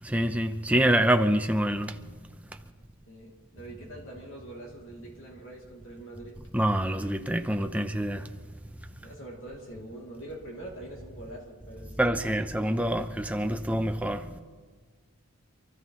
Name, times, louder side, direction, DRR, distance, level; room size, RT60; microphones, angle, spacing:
voice 1, 0.0-2.0 6.5-8.3 12.0-14.4, right 1 dB, 5° right, 0.6 m, -26 dB
voice 2, 3.1-6.4 9.0-12.8, right 1 dB, 60° left, 3.0 m, -44 dB
28.0 x 14.0 x 3.2 m
head